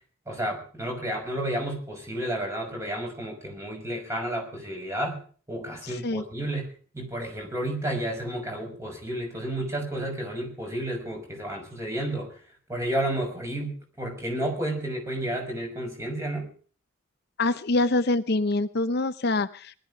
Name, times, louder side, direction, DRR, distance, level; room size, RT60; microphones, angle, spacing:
voice 1, 0.3-5.2 5.5-6.7 6.9-12.3 12.7-16.5, right 1 dB, 15° right, 2 dB, 6.1 m, -31 dB
voice 2, 5.8-6.2 17.4-19.8, left 2 dB, 50° left, 12 dB, 0.7 m, -25 dB
19.5 x 13.0 x 4.9 m, 0.42 s
head